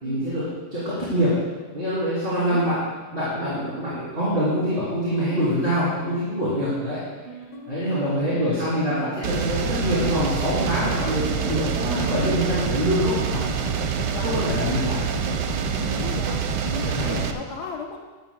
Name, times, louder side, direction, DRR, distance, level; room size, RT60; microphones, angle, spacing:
voice 1, 0.0-1.4 1.7-2.8 3.1-7.0 7.7-13.4 14.2-15.1 16.8-17.2, equal, 35° right, -11 dB, 3.2 m, -25 dB
Guitar, 6.3-16.1, equal, 55° left, 1.8 m, -41 dB
voice 2, 7.9-9.1 11.3-11.8 14.1-14.4 15.8-18.0, left 4 dB, 80° left, 1 dB, 1.6 m, -37 dB
sound 1, 9.2-17.3, right 6 dB, 90° right, 1.3 m, -26 dB
15.5 x 12.0 x 2.3 m, 1.3 s
omnidirectional pair, 1.7 m